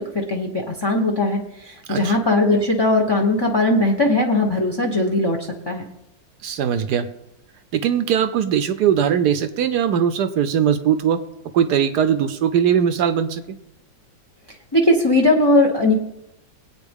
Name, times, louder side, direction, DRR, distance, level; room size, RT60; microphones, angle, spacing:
voice 1, 0.0-5.8 14.7-15.9, left 2 dB, 20° left, 3 dB, 0.7 m, -19 dB
voice 2, 6.4-7.1 7.7-11.2 11.5-13.4, right 8 dB, 70° right, 11 dB, 1.1 m, -20 dB
21.5 x 8.8 x 3.6 m, 0.88 s
omnidirectional pair, 2.0 m